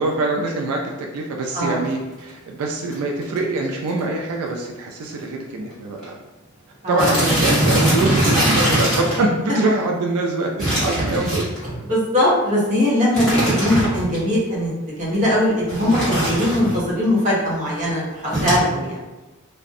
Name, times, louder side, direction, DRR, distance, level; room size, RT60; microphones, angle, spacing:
voice 1, 0.0-6.2 6.9-11.4, right 2 dB, 80° right, 0 dB, 0.3 m, -24 dB
sound 1, 1.6-1.9 2.6-2.7 2.9-3.0 3.2-3.5 3.9-4.0 4.3-4.4 5.2-5.3 5.5-5.7 6.0-6.1 7.0-9.2 10.6-11.8 13.1-14.2 15.7-16.8 18.3-18.6, right 1 dB, ahead, 1.0 m, -21 dB
voice 2, 11.9-18.9, left 1 dB, 35° right, -6 dB, 0.7 m, -20 dB
2.4 x 2.0 x 2.6 m, 1.1 s
head